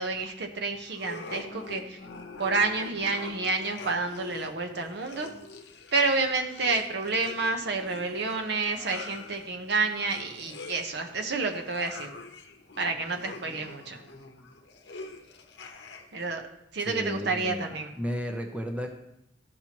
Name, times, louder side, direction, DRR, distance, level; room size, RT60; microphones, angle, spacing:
voice 1, 0.0-2.0 2.4-5.3 5.9-12.1 12.8-14.0 16.1-16.4 16.7-17.9, right 3 dB, 65° right, 4 dB, 0.9 m, -29 dB
sound 1, 0.9-16.3, left 3 dB, 65° left, 0.9 m, -45 dB
voice 2, 16.8-18.9, equal, 5° right, 3 dB, 0.7 m, -34 dB
13.5 x 5.9 x 2.9 m, 0.83 s
head